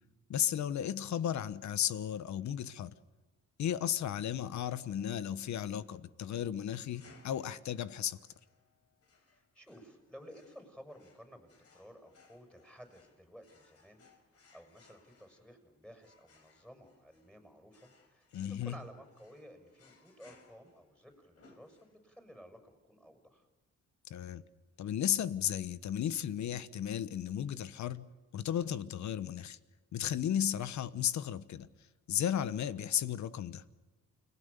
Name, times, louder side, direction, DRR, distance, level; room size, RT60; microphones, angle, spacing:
voice 1, 0.3-2.9 3.6-8.2 18.3-18.7 24.1-24.4 24.8-28.1 28.3-29.6 29.9-31.7 32.1-33.6, left 10 dB, 70° left, 15 dB, 1.2 m, -34 dB
sound 1, 6.9-22.3, left 4 dB, 55° left, 5.0 m, -65 dB
voice 2, 9.2-14.0 14.3-23.5 32.4-32.6, equal, 5° left, 6 dB, 6.5 m, -55 dB
29.5 x 20.5 x 6.9 m, 1.2 s
cardioid pair, 90°, 30 cm